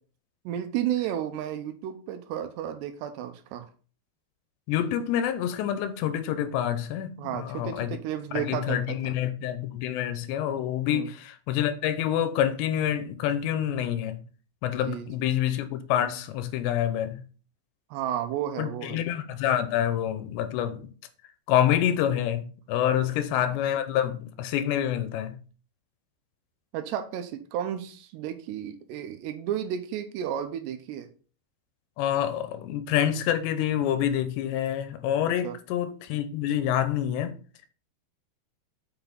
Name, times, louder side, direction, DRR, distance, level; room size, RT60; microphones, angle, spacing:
voice 1, 0.5-3.7 7.2-8.8 9.0-9.1 10.9-11.1 14.8-15.1 17.9-19.0 22.9-23.1 26.7-31.1 35.4-35.6, right 10 dB, 80° right, 2.8 m, -32 dB
voice 2, 4.7-8.0 8.3-14.2 14.6-17.2 18.6-20.9 21.5-25.4 32.0-37.3, left 10 dB, 85° left, 2.8 m, -27 dB
7.0 x 5.8 x 3.9 m
omnidirectional pair, 5.1 m